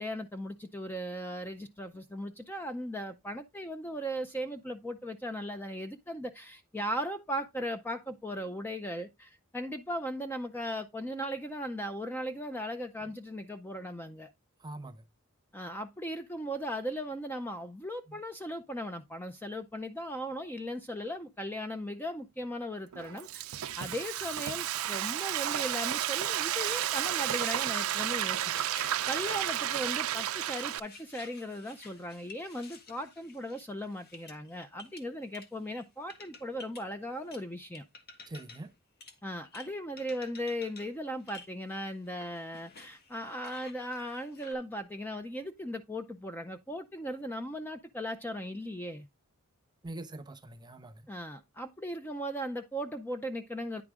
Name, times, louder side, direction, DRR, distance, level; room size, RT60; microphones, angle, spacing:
voice 1, 0.0-14.3 15.5-28.5 29.1-37.8 39.2-49.1 51.1-53.8, equal, 10° left, 0.5 m, -38 dB
voice 2, 14.6-15.0 38.3-38.7 49.8-51.1, right 2 dB, 20° right, 0.8 m, -43 dB
Frying (food), 22.9-30.8, right 11 dB, 80° right, 0.5 m, -32 dB
sound 1, 28.2-35.8 36.1-36.9 37.3-38.7 39.0-39.7 40.0-40.9 41.2-44.5, left 4 dB, 50° left, 1.3 m, -52 dB
9.7 x 4.8 x 3.6 m
head